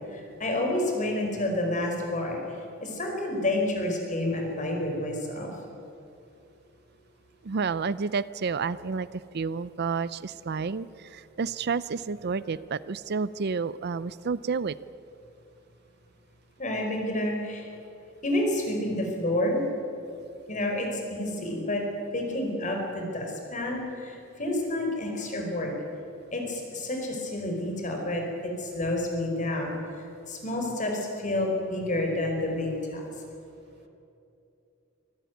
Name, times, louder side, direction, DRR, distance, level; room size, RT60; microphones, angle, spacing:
voice 1, 0.1-2.4 2.8-5.5 16.6-17.7 18.2-19.6 20.5-21.8 22.1-25.7 26.3-29.8 30.3-33.1, left 1 dB, 40° left, 2 dB, 4.7 m, -29 dB
voice 2, 7.4-14.8, right 5 dB, 55° right, 17 dB, 0.5 m, -30 dB
24.5 x 14.5 x 9.4 m, 2.7 s
head